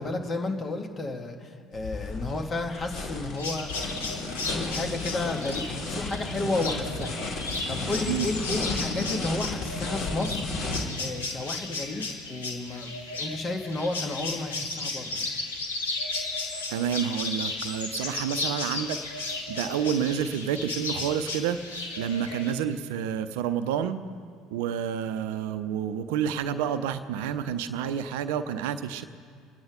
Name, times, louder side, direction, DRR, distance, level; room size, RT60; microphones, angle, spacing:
voice 1, 0.0-3.7 4.1-15.2, left 2 dB, 30° left, 3 dB, 2.3 m, -32 dB
sound 1, 1.7-10.8, left 2 dB, 50° left, 2.9 m, -33 dB
sound 2, 3.4-22.5, left 3 dB, 80° left, 1.7 m, -34 dB
voice 2, 16.7-24.0 24.5-29.0, right 8 dB, 65° right, 11 dB, 0.7 m, -29 dB
27.5 x 9.7 x 5.1 m, 2.1 s
figure-of-eight pair, 60°, 0 cm